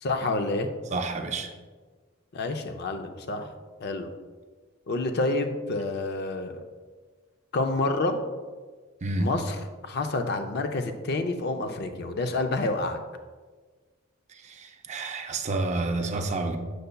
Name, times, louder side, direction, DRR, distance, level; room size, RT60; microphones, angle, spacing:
voice 1, 0.0-0.7 2.3-3.5 3.8-4.1 4.9-6.5 7.5-8.2 9.2-13.0, left 2 dB, 55° left, 0.5 m, -28 dB
voice 2, 0.9-1.5 9.0-9.4 14.6-16.6, right 2 dB, 35° right, 0.5 m, -29 dB
6.7 x 6.6 x 2.2 m
head